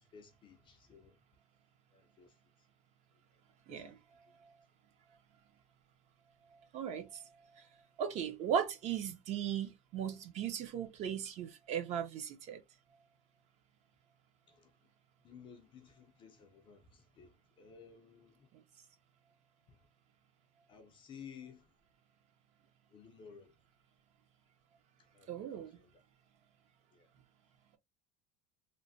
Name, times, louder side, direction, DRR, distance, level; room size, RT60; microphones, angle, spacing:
voice 1, 0.1-1.2 1.9-2.3 3.7-4.0 14.5-14.7 15.2-18.5 19.7-19.8 20.7-21.7 22.9-23.5 25.1-25.9 26.9-27.1, left 6 dB, 25° left, 0.5 m, -56 dB
voice 2, 3.7-4.0 4.4-4.5 6.7-7.6 8.0-12.6 25.3-25.8, right 8 dB, 40° right, 0.7 m, -37 dB
3.1 x 2.1 x 2.6 m
cardioid pair, 165°, 19 cm